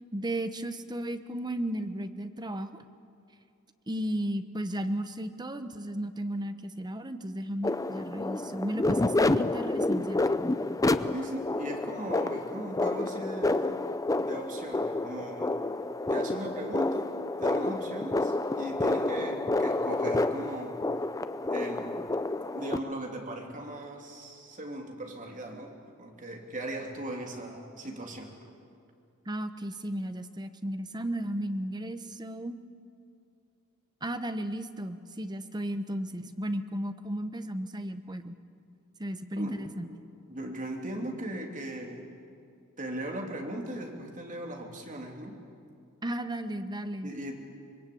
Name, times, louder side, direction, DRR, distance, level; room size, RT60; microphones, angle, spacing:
voice 1, 0.1-2.8 3.9-10.4 29.3-32.6 34.0-38.3 39.0-39.9 46.0-47.1, right 1 dB, 20° right, 9 dB, 1.0 m, -34 dB
sound 1, 7.6-22.8, left 2 dB, 15° left, 0.6 m, -29 dB
voice 2, 11.1-13.8 14.1-15.7 16.1-17.1 17.4-20.8 21.5-22.0 22.5-28.3 39.3-39.7 40.3-42.1 42.8-45.4 47.0-47.3, right 1 dB, 35° right, 1 dB, 3.1 m, -38 dB
25.0 x 22.0 x 8.7 m, 2.4 s
head